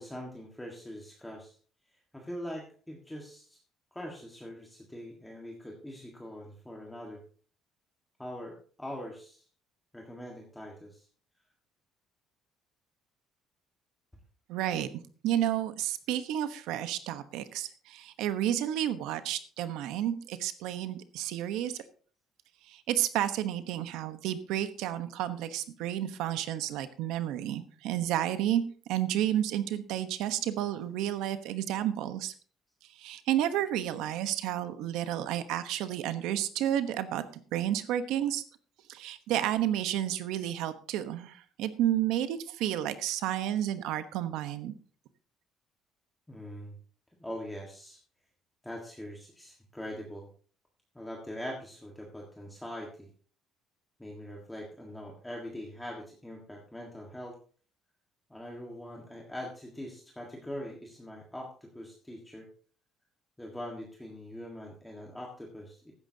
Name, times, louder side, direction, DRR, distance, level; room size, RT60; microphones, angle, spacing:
voice 1, 0.0-1.6 1.9-3.6 3.9-7.2 8.2-9.4 9.9-11.1 46.3-46.7 47.2-48.0 48.6-50.3 50.9-53.1 54.0-57.4 58.3-62.5 63.4-65.9, equal, 5° left, -1 dB, 1.7 m, -42 dB
voice 2, 14.5-14.9 15.2-21.8 22.7-28.6 28.9-32.3 33.0-37.2 37.5-38.4 38.9-44.7, right 11 dB, 80° right, 11 dB, 1.1 m, -31 dB
15.5 x 12.0 x 2.8 m, 0.42 s
cardioid pair, 175°, 0 cm